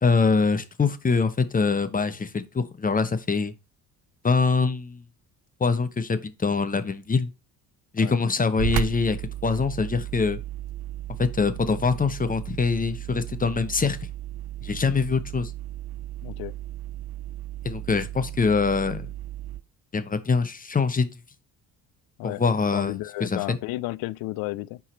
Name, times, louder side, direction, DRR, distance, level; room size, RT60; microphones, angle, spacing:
voice 1, 0.0-3.5 4.2-5.0 5.6-7.3 7.9-10.4 11.2-14.0 14.6-15.5 17.6-19.1 19.9-21.1 22.2-23.6, left 4 dB, 15° left, 0.7 m, -24 dB
sound 1, 8.6-19.6, right 13 dB, 55° right, 0.6 m, -35 dB
voice 2, 16.2-16.5 22.2-22.4 22.7-24.8, left 19 dB, 50° left, 0.4 m, -32 dB
8.5 x 4.7 x 3.2 m
figure-of-eight pair, 45°, 49 cm